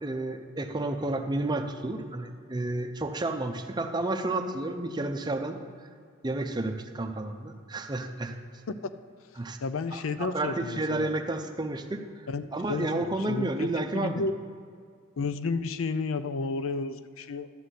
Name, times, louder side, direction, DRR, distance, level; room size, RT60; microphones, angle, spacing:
voice 1, 0.0-5.6 6.2-8.4 9.4-9.6 9.9-12.0 12.5-14.2, right 2 dB, 20° right, 6 dB, 0.6 m, -31 dB
voice 2, 9.6-11.1 12.3-14.3 15.2-17.5, left 4 dB, 85° left, 12 dB, 0.5 m, -32 dB
12.0 x 4.1 x 8.0 m, 2.1 s
head